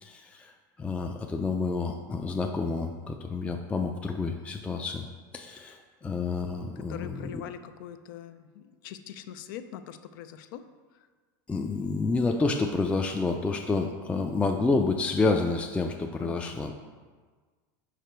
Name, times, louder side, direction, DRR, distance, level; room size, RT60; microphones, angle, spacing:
voice 1, 0.0-5.1 5.3-7.4 11.5-16.7, left 3 dB, 10° left, 3 dB, 0.3 m, -29 dB
voice 2, 6.8-10.6 16.2-16.6, left 10 dB, 80° left, 10 dB, 0.5 m, -43 dB
5.0 x 4.9 x 4.5 m, 1.4 s
supercardioid pair, 115°, 11 cm